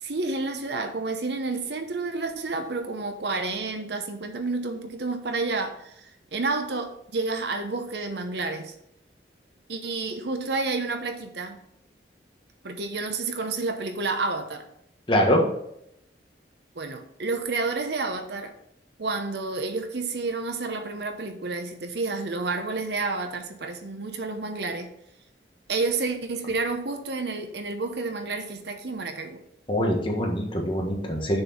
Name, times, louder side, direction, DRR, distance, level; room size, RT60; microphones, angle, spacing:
voice 1, 0.0-8.7 9.7-11.6 12.6-14.7 16.7-18.6 19.0-24.9 25.7-29.4, right 3 dB, 65° right, 6 dB, 0.9 m, -30 dB
voice 2, 15.1-15.4 29.7-31.4, equal, 30° left, 0 dB, 1.5 m, -23 dB
6.6 x 4.6 x 5.8 m, 0.76 s
head